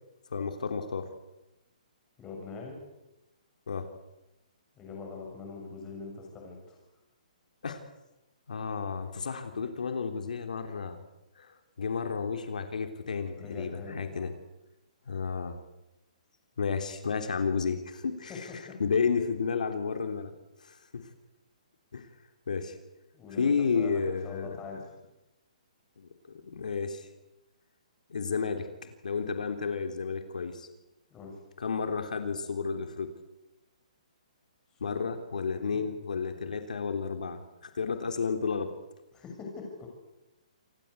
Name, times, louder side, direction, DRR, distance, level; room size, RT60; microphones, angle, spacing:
voice 1, 0.3-1.1 3.7-3.9 7.6-7.8 8.5-11.0 11.3-14.3 15.1-15.6 16.6-18.5 18.8-20.3 20.6-21.1 21.9-22.1 22.5-22.8 23.4-24.6 26.0-26.1 26.4-27.1 28.1-30.7 31.6-33.1 34.8-38.7, left 5 dB, 80° left, 6 dB, 3.4 m, -32 dB
voice 2, 2.2-2.8 4.7-6.8 13.3-14.3 18.3-18.8 23.1-24.9 31.1-31.4 34.7-35.9 39.1-39.9, left 4 dB, 15° left, 0 dB, 6.8 m, -43 dB
28.0 x 19.0 x 8.3 m, 0.97 s
hypercardioid pair, 170°, 4 cm